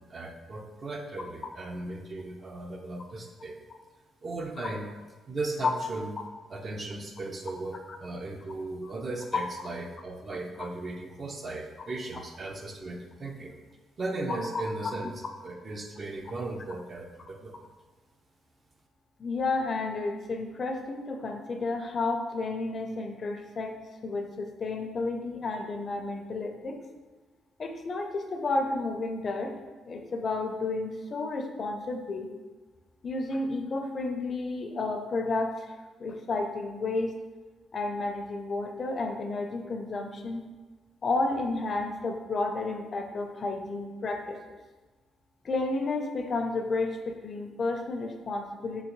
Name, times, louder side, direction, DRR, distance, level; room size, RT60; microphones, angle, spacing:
voice 1, 0.0-3.6 4.2-4.9 5.3-6.1 6.5-13.6 14.0-15.1 15.4-17.5, right 2 dB, 40° right, 3 dB, 0.5 m, -37 dB
voice 2, 19.2-26.8 27.6-29.6 29.8-32.3 33.0-35.7 36.0-37.1 37.7-40.4 41.0-44.4 45.4-48.8, left 3 dB, 45° left, 5 dB, 0.4 m, -31 dB
3.6 x 2.9 x 3.0 m, 1.3 s
cardioid pair, 90°, 0 cm